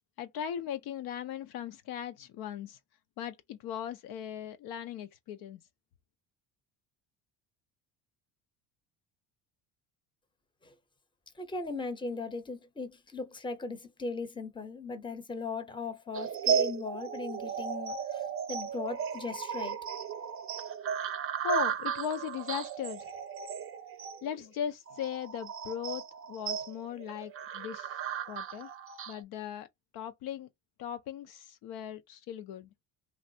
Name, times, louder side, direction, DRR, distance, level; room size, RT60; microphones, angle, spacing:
voice 1, 0.2-2.8 3.2-5.6 21.4-23.1 24.2-26.0 26.3-28.0 28.3-28.7 29.1-29.7 29.9-30.5 30.8-32.7, left 9 dB, 65° left, 0.5 m, -38 dB
voice 2, 11.4-18.2 18.5-19.8, left 3 dB, 10° left, 0.7 m, -38 dB
sound 1, 16.1-29.2, right 7 dB, 35° right, 0.5 m, -35 dB
3.2 x 2.4 x 2.7 m
supercardioid pair, 90°, 41 cm